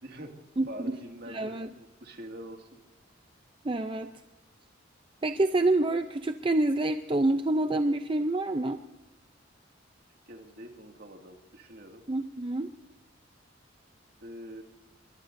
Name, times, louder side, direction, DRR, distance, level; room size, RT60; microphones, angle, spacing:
voice 1, 0.0-0.4 0.7-2.7 10.3-12.0 14.2-14.6, equal, 55° right, 4 dB, 2.1 m, -45 dB
voice 2, 0.6-0.9 1.3-1.7 3.6-4.2 5.2-8.8 12.1-12.7, right 2 dB, 25° right, 9 dB, 0.5 m, -27 dB
22.0 x 21.0 x 2.6 m, 1.1 s
head